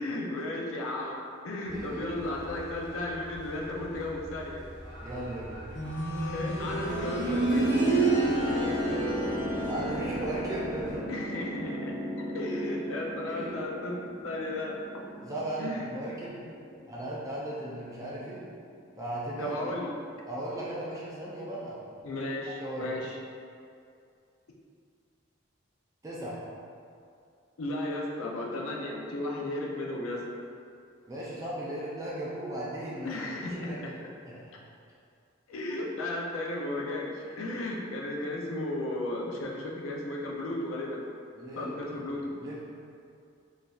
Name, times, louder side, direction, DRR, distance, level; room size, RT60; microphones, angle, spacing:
voice 1, 0.0-4.6 6.3-7.7 11.1-11.9 12.3-14.8 15.6-15.9 16.7-16.8 19.4-19.9 22.0-23.2 27.6-30.2 33.0-33.9 35.5-41.0 41.6-42.3, left 1 dB, 90° left, -1 dB, 0.5 m, -34 dB
sound 1, 1.6-11.0, equal, 60° right, 0.9 m, -46 dB
voice 2, 1.7-2.0 5.0-5.7 9.7-11.0 13.3-13.6 15.2-16.4 16.9-18.4 19.0-19.7 20.3-21.8 22.6-22.9 26.0-26.4 31.1-33.1 33.4-34.6 41.3-41.8 42.4-42.6, right 1 dB, 15° right, -7 dB, 0.4 m, -37 dB
sound 2, 5.8-16.5 17.9-18.0, right 2 dB, 55° left, 0.9 m, -31 dB
3.9 x 2.5 x 2.3 m, 2.4 s
head